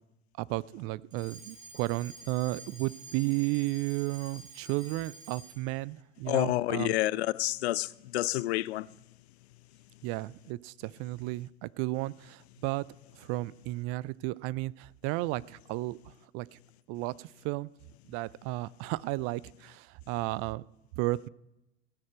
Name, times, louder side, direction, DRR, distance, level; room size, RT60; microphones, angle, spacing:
voice 1, 0.4-6.9 10.0-12.9 13.2-16.6 16.9-17.7 18.1-20.6 21.0-21.3, right 20 dB, 45° right, 0.4 m, -33 dB
Alarm, 1.1-5.7, right 2 dB, 20° right, 2.4 m, -49 dB
voice 2, 6.3-8.9, left 16 dB, 70° left, 0.5 m, -29 dB
16.5 x 6.5 x 7.6 m
figure-of-eight pair, 80°, 34 cm